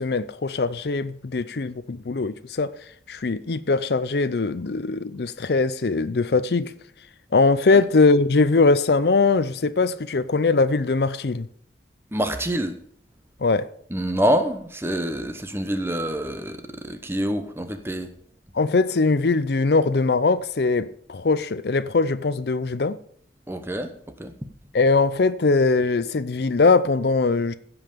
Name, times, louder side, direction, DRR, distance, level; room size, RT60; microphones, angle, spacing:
voice 1, 0.0-2.7 3.1-6.7 7.3-11.5 13.4-13.7 18.5-23.0 24.7-27.5, left 3 dB, 65° left, 0.5 m, -21 dB
voice 2, 12.1-12.7 13.9-18.1 23.5-23.9 24.2-24.3, equal, 15° right, 0.9 m, -26 dB
16.0 x 5.6 x 6.7 m
head